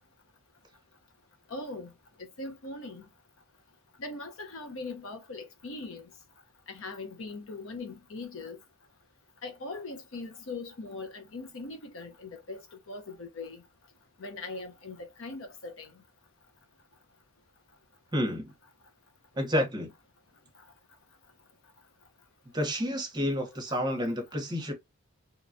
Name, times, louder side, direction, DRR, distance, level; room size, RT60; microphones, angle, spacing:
voice 1, 1.5-1.9 2.4-3.0 4.0-6.0 6.7-8.6 9.4-12.6 12.9-13.6 14.2-15.9, left 3 dB, 65° left, 0.7 m, -40 dB
voice 2, 18.1-18.5 19.3-19.9 22.5-24.7, equal, 20° right, 0.8 m, -29 dB
2.9 x 2.2 x 2.5 m
head